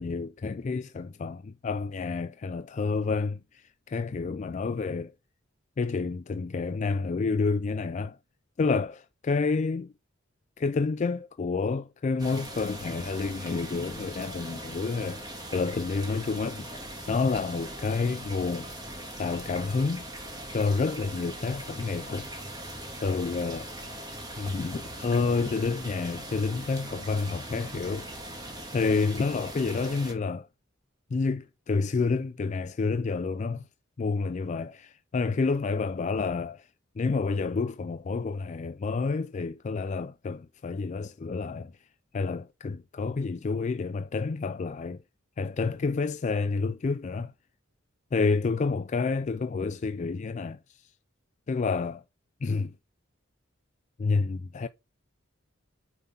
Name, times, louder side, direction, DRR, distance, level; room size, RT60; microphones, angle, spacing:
voice 1, 0.0-3.4 3.9-5.1 5.8-8.2 8.6-9.0 9.2-9.9 10.6-16.7 17.1-18.7 19.2-20.0 20.5-22.3 23.0-23.7 24.4-28.1 28.7-30.5 31.1-33.6 34.0-36.6 37.0-41.7 42.1-45.0 45.4-47.3 48.1-50.6 51.5-52.0 52.4-52.7 54.0-54.7, left 4 dB, 35° left, 0.3 m, -29 dB
sound 1, 12.2-30.1, right 1 dB, 20° right, 1.8 m, -40 dB
8.9 x 3.8 x 5.5 m
head